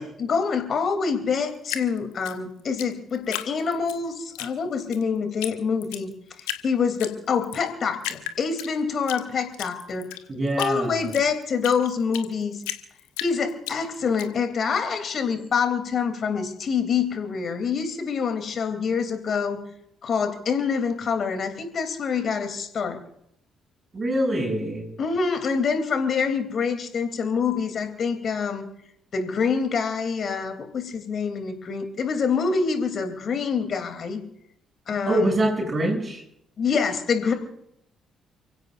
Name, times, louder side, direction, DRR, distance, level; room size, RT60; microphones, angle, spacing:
voice 1, 0.0-6.1 6.4-10.1 10.6-12.6 13.2-19.6 20.0-23.0 25.0-28.7 29.1-34.2 34.9-35.4 36.6-37.3, left 5 dB, 50° left, 7 dB, 3.1 m, -26 dB
Drip, 1.7-4.0 4.3-5.0 5.4-5.5 5.8-6.6 7.0-7.6 8.0-9.2 9.5-12.3 12.6-14.3, left 14 dB, 70° left, 1.0 m, -34 dB
voice 2, 10.3-11.1 23.9-24.9 35.1-36.2, right 1 dB, 35° right, 1 dB, 7.5 m, -24 dB
30.0 x 16.5 x 2.6 m, 0.75 s
figure-of-eight pair, 45°, 0 cm